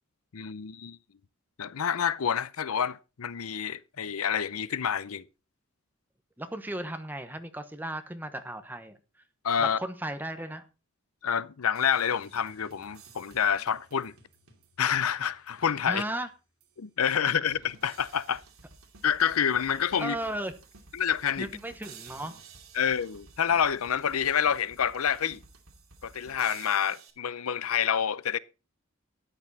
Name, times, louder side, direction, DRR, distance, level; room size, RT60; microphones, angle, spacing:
voice 1, 0.3-1.0 1.6-5.2 9.4-9.8 11.2-14.1 14.8-16.0 16.8-18.4 19.0-20.2 20.9-21.5 22.7-25.4 26.0-28.4, left 8 dB, 85° left, 0.6 m, -28 dB
voice 2, 6.4-9.0 9.6-10.6 15.8-16.3 20.0-20.6 21.4-22.4, right 1 dB, 10° right, 1.0 m, -35 dB
sound 1, 11.7-16.2 16.6-16.7 17.5-27.1, right 5 dB, 75° right, 2.7 m, -53 dB
13.0 x 9.8 x 4.1 m
head